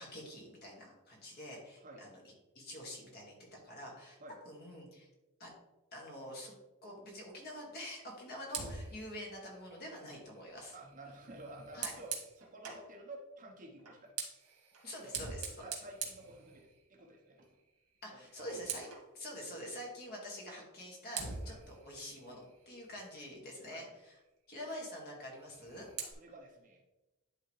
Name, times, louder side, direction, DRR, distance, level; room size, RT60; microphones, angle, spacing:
voice 1, 0.0-2.2 2.6-4.2 4.5-5.1 5.4-5.5 5.9-6.5 6.8-10.7 11.7-11.9 14.8-15.6 18.0-18.9 19.1-24.2 24.5-25.9, equal, 45° left, -2 dB, 2.0 m, -46 dB
Fire, 8.5-12.9 13.8-17.1 17.4-17.7 18.0-19.1 20.5-20.6 21.1-23.5 25.3-26.1, right 6 dB, 80° right, 1.7 m, -45 dB
voice 2, 10.7-14.1 15.0-15.1 15.4-17.5 18.1-18.5 21.4-21.6 23.7-23.9 26.1-26.9, right 1 dB, 35° right, 0 dB, 1.0 m, -52 dB
10.5 x 3.7 x 3.2 m, 1.0 s
head